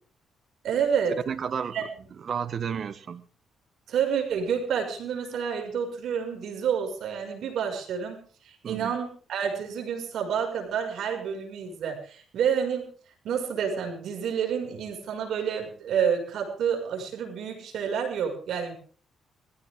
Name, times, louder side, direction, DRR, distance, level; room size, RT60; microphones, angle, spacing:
voice 1, 0.6-1.2 1.7-1.8 3.9-12.9 13.2-18.8, right 7 dB, 70° right, 3 dB, 6.2 m, -29 dB
voice 2, 1.3-1.9 2.2-3.3 8.6-8.9, right 7 dB, 50° right, 13 dB, 1.4 m, -32 dB
21.0 x 16.0 x 3.8 m, 0.43 s
cardioid pair, 90°, 0 cm